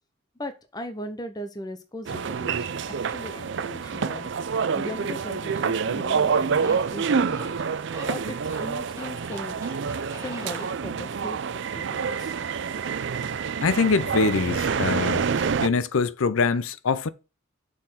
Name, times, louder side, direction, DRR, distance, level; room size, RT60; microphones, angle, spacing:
voice 1, 0.4-2.7 3.1-4.3 4.7-7.5 8.1-9.6 10.2-11.4 11.7-12.3 12.8-12.9, left 1 dB, 20° left, 0.7 m, -38 dB
sound 1, 2.1-15.7, right 6 dB, 60° right, 0.4 m, -27 dB
sound 2, 6.5-11.3, right 1 dB, 15° right, 2.0 m, -42 dB
voice 2, 13.6-17.1, left 4 dB, 80° left, 0.6 m, -24 dB
6.5 x 4.1 x 5.6 m
head